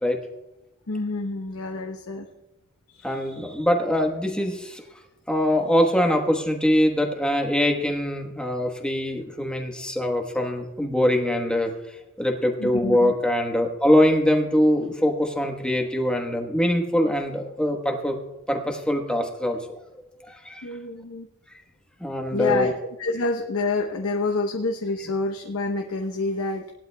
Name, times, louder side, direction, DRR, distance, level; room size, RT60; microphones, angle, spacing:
voice 1, 0.9-2.3 2.9-3.5 12.6-13.1 20.6-21.3 22.3-22.7 23.0-26.6, left 3 dB, 80° left, 3 dB, 0.8 m, -28 dB
voice 2, 3.0-4.8 5.3-11.7 12.2-18.2 18.5-19.6 20.3-20.6 22.0-22.7, equal, 5° left, 3 dB, 1.2 m, -23 dB
18.5 x 11.5 x 2.2 m, 0.95 s
head